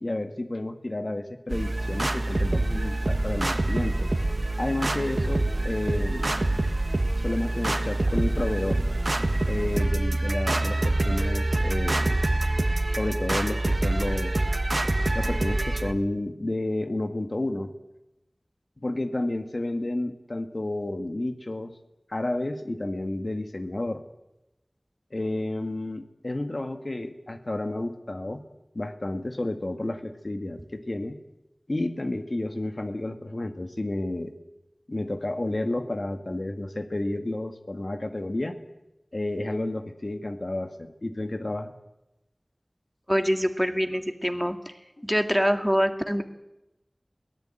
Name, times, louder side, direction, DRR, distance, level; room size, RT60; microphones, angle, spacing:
voice 1, 0.0-4.1 4.6-6.3 7.2-8.8 9.5-12.2 12.9-14.5 15.1-17.7 18.8-21.7 22.1-24.0 25.1-28.4 28.8-31.2 31.7-34.4 34.9-38.6 39.1-41.7, left 1 dB, 65° left, 7 dB, 1.8 m, -31 dB
sound 1, 1.5-15.9, right 2 dB, 65° right, 1.6 m, -26 dB
voice 2, 43.1-44.7 45.0-46.2, equal, ahead, 7 dB, 2.2 m, -25 dB
22.5 x 17.0 x 9.0 m, 0.95 s
wide cardioid pair, 45°, 0 cm